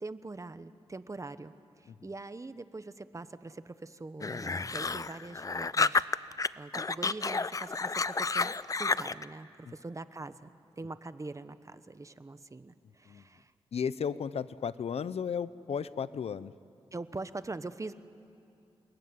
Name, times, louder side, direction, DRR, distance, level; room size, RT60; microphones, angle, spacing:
voice 1, 0.0-6.1 6.6-10.5 10.8-13.5 16.9-17.9, right 3 dB, 30° right, 12 dB, 1.1 m, -43 dB
sound 1, 4.2-6.5 6.7-9.2, left 4 dB, 35° left, 0.6 m, -30 dB
voice 2, 13.7-16.5, left 7 dB, 85° left, 16 dB, 0.7 m, -34 dB
29.0 x 21.0 x 9.7 m, 2.7 s
wide cardioid pair, 75°, 10 cm